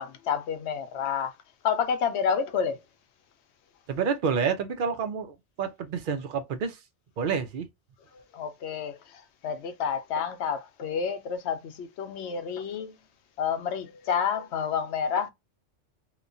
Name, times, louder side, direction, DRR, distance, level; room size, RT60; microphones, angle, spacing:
voice 1, 0.0-1.3 1.6-2.8 8.1-12.9 13.4-15.3, left 7 dB, 70° left, 0.8 m, -29 dB
voice 2, 3.9-6.8 7.2-7.7, right 6 dB, 55° right, 0.6 m, -29 dB
3.0 x 2.1 x 2.5 m
omnidirectional pair, 1.2 m